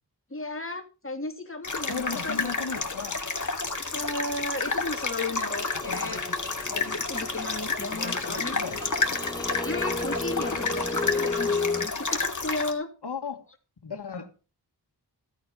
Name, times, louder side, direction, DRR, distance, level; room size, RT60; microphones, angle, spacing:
voice 1, 0.3-2.5 3.9-6.2 6.7-8.6 9.6-12.9, left 2 dB, 30° left, 2.8 m, -34 dB
sound 1, 1.6-12.7, left 3 dB, 45° left, 2.6 m, -30 dB
voice 2, 1.9-3.2 5.7-6.4 6.9-7.0 7.7-8.9 13.0-13.5 13.8-14.3, left 5 dB, 75° left, 2.1 m, -37 dB
sound 2, 5.6-11.9, left 3 dB, 10° left, 0.9 m, -33 dB
16.0 x 8.6 x 5.5 m
wide cardioid pair, 75°, 41 cm